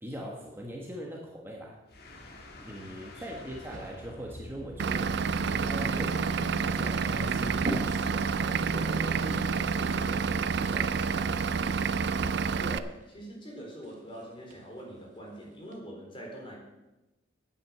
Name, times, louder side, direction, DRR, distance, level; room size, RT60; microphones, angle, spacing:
voice 1, 0.0-1.8 2.6-11.4, equal, 10° right, -1 dB, 1.4 m, -41 dB
sound 1, 1.9-12.4, left 1 dB, 55° left, 1.9 m, -48 dB
voice 2, 3.2-3.5 12.6-16.6, right 1 dB, 30° left, -1 dB, 3.9 m, -44 dB
sound 2, 3.5-15.8, right 1 dB, 40° right, 1.5 m, -45 dB
Vehicle / Engine, 4.8-12.8, right 5 dB, 60° right, 0.5 m, -29 dB
9.8 x 8.8 x 7.4 m, 1.0 s
head